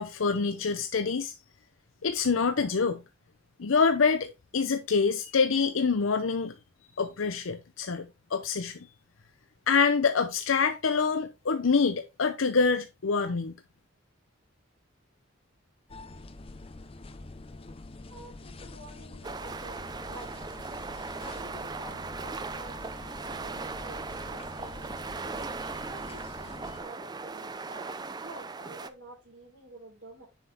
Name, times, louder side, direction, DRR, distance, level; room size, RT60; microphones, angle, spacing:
voice 1, 0.0-1.3 2.0-3.0 3.6-6.5 7.0-8.9 9.7-13.5, left 5 dB, 75° left, 0.7 m, -26 dB
sound 1, 15.9-26.8, left 2 dB, 25° left, 0.6 m, -45 dB
voice 2, 18.1-20.3 21.2-24.9 25.8-30.3, right 2 dB, 60° right, 3.7 m, -49 dB
sound 2, 19.2-28.9, right 4 dB, 20° right, 0.4 m, -38 dB
7.3 x 5.7 x 3.4 m
head